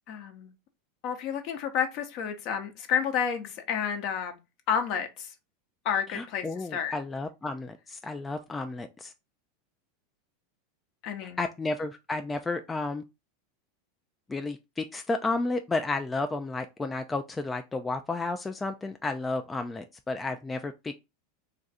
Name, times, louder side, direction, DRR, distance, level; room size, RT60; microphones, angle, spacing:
voice 1, 0.1-0.5 1.0-4.4 4.7-5.3 5.8-7.0 11.0-11.5, left 7 dB, 55° left, 0.7 m, -30 dB
voice 2, 6.1-9.1 11.4-13.0 14.3-21.0, left 3 dB, 15° left, 0.3 m, -32 dB
2.5 x 2.4 x 4.0 m
hypercardioid pair, 100°, 0 cm